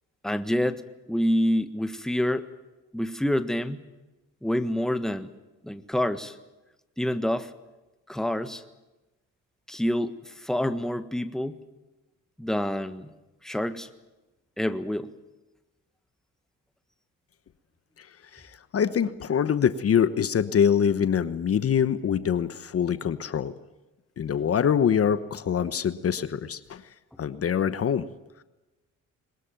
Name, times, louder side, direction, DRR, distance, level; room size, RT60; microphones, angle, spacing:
voice 1, 0.2-2.5 2.9-3.8 4.4-5.3 5.6-6.3 7.0-7.5 8.1-8.6 9.7-11.6 12.4-13.1 13.4-13.9 14.6-15.1 27.1-27.2, equal, ahead, 10 dB, 1.5 m, -27 dB
voice 2, 18.3-23.5 24.2-26.8 27.2-28.1, left 8 dB, 50° left, 13 dB, 1.1 m, -24 dB
22.0 x 20.0 x 9.2 m, 1.0 s
cardioid pair, 90°, 30 cm